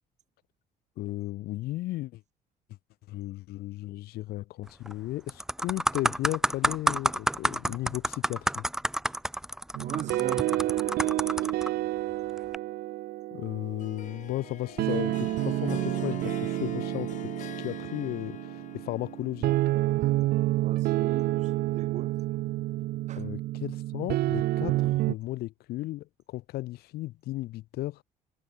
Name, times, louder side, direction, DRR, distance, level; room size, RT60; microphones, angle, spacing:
voice 1, 1.0-2.2 3.1-8.6 13.3-19.6 23.2-28.0, left 17 dB, 80° left, 1.3 m, -35 dB
sound 1, 4.7-4.9 5.3-11.7 12.4-12.6, right 1 dB, 5° right, 0.6 m, -29 dB
sound 2, 9.7-25.1, right 16 dB, 70° right, 0.7 m, -29 dB
voice 2, 9.8-11.6 20.5-22.2 23.1-23.3, right 10 dB, 45° right, 1.0 m, -40 dB
Harp, 13.8-19.6, left 11 dB, 50° left, 1.1 m, -44 dB
cardioid pair, 120°, 16 cm